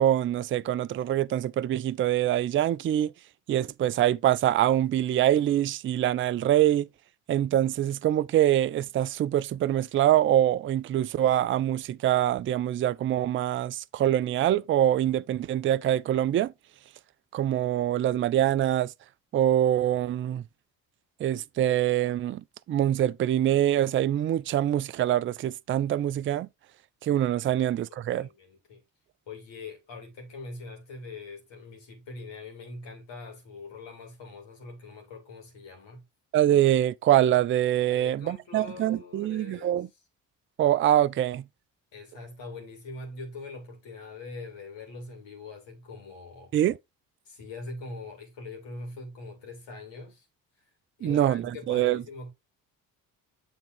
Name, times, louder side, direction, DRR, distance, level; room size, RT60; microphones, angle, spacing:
voice 1, 0.0-3.1 3.5-6.9 7.3-16.5 17.3-18.9 19.3-20.4 21.2-22.4 22.7-26.5 27.0-28.3 36.3-39.9 40.6-41.4 46.5-46.8 51.0-52.0, right 12 dB, 30° right, 0.4 m, -24 dB
voice 2, 27.5-28.8 29.3-36.0 37.9-39.8 41.9-46.5 47.3-50.3 51.0-52.3, left 3 dB, 65° left, 2.4 m, -43 dB
6.9 x 3.5 x 4.4 m
hypercardioid pair, 45°, 47 cm